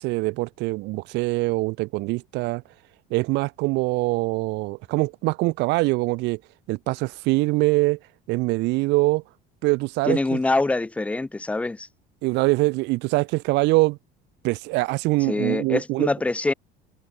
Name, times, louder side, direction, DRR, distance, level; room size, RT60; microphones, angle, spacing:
voice 1, 0.0-2.6 3.1-6.4 6.7-8.0 8.3-9.2 9.6-10.4 12.2-14.0 14.4-16.1, right 22 dB, 60° right, 0.7 m, -23 dB
voice 2, 10.1-11.9 15.3-16.5, left 2 dB, 5° left, 0.7 m, -24 dB
open air
cardioid pair, 165°, 20 cm